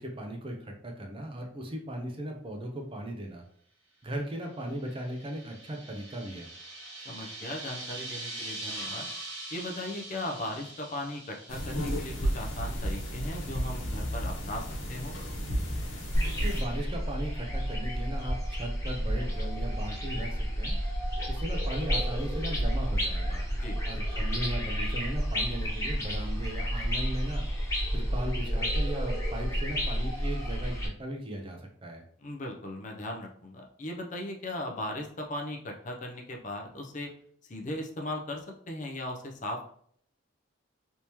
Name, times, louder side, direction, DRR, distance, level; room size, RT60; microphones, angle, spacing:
voice 1, 0.0-3.4 4.0-6.5 16.2-20.8 21.3-23.4 23.9-27.5 27.9-32.0, right 1 dB, 25° right, 2 dB, 0.5 m, -37 dB
sound 1, 4.6-12.9, right 2 dB, 75° right, 1.3 m, -42 dB
voice 2, 7.1-9.1 9.5-15.1 23.5-23.8 32.2-37.1 37.4-39.6, left 1 dB, 40° left, 1 dB, 0.5 m, -38 dB
sound 2, 11.5-16.6, equal, 65° left, 1.1 m, -33 dB
sound 3, 16.1-30.9, equal, 15° left, 0.9 m, -30 dB
3.4 x 2.8 x 2.9 m, 0.63 s
head